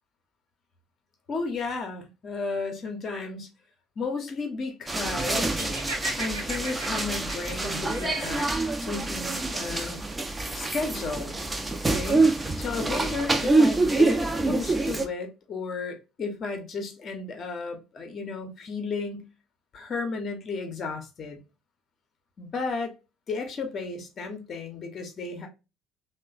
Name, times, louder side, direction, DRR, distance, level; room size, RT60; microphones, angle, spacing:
voice 1, 1.3-3.5 4.0-5.8 6.2-8.5 8.8-10.0 10.5-11.4 11.9-12.3 12.6-19.3 19.7-21.4 22.4-22.9 23.3-25.5, left 4 dB, 45° left, 0.6 m, -33 dB
sound 1, 4.9-15.1, right 2 dB, 20° right, 0.5 m, -26 dB
Laughter, 5.5-8.5, right 2 dB, 85° right, 0.8 m, -37 dB
3.0 x 2.1 x 2.3 m
hypercardioid pair, 60°, 0 cm